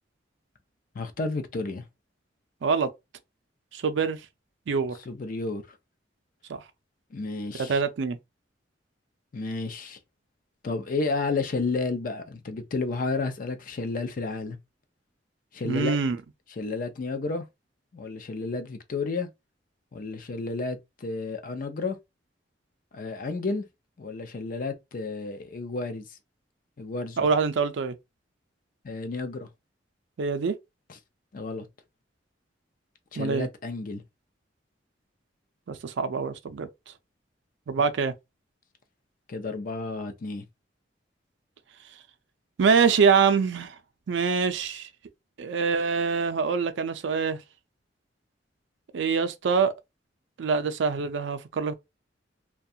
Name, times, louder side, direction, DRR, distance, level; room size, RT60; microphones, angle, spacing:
voice 1, 0.9-1.8 5.1-5.6 7.1-7.8 9.3-10.0 10.6-14.6 15.5-16.0 16.6-17.5 17.9-19.3 19.9-22.0 22.9-23.6 24.0-26.2 26.8-27.3 28.8-29.5 31.3-31.7 33.1-34.0 39.3-40.4, left 3 dB, 50° left, 0.4 m, -31 dB
voice 2, 3.7-4.2 4.7-5.0 6.5-6.6 7.6-8.2 15.6-16.2 27.2-28.0 30.2-30.5 33.2-33.5 35.7-36.7 37.7-38.1 42.6-43.8 44.1-44.9 45.4-47.4 48.9-49.7 50.4-51.7, right 5 dB, 75° right, 0.4 m, -24 dB
2.3 x 2.2 x 2.7 m
head